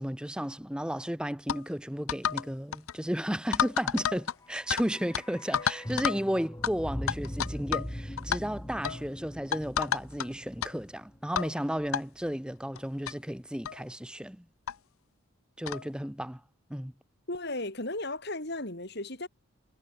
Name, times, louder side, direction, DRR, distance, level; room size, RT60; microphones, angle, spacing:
voice 1, 0.0-14.5 15.6-16.4 16.7-16.9, equal, 5° right, 1.0 m, -33 dB
sound 1, 1.5-1.6 2.1-2.5 2.7-2.9 3.5-4.8 5.1-5.2 5.5-6.2 6.6-6.7 7.1-7.9 8.2-8.4 8.8-9.0 9.5-10.3 10.6-10.7 11.4-11.5 11.9-12.0 12.8-12.9 13.1-13.2 13.6-13.8 14.7-14.8 15.7-15.9, left 8 dB, 80° left, 0.6 m, -30 dB
sound 2, 4.2-12.3 12.5-12.6, equal, 15° left, 2.0 m, -42 dB
voice 2, 17.3-19.3, left 2 dB, 50° left, 4.5 m, -35 dB
head